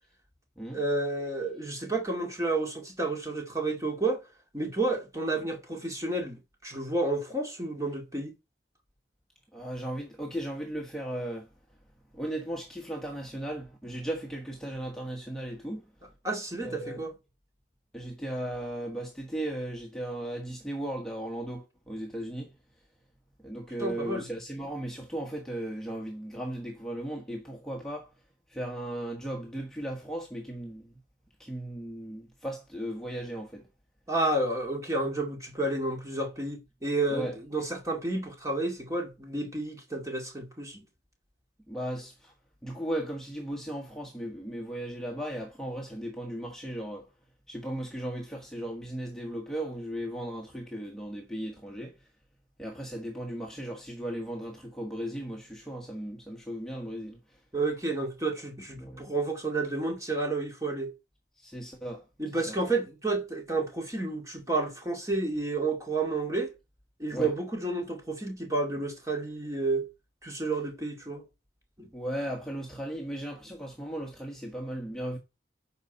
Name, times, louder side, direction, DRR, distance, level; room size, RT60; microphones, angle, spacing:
voice 1, 0.7-4.2 4.5-8.3 16.2-17.1 23.8-24.3 34.1-40.9 57.5-60.9 62.2-66.5 67.0-69.9 70.2-71.2 71.8-71.9, right 2 dB, 20° right, 2.2 m, -31 dB
voice 2, 9.5-11.5 12.1-15.8 16.6-17.0 17.9-22.5 23.4-28.1 28.5-30.9 31.4-33.6 37.1-37.4 41.7-42.3 42.6-47.1 47.5-51.9 52.6-57.2 58.8-59.0 61.4-62.0 62.3-62.6 67.1-67.3 71.9-75.2, right 1 dB, 5° left, 1.2 m, -36 dB
9.1 x 5.6 x 4.2 m
head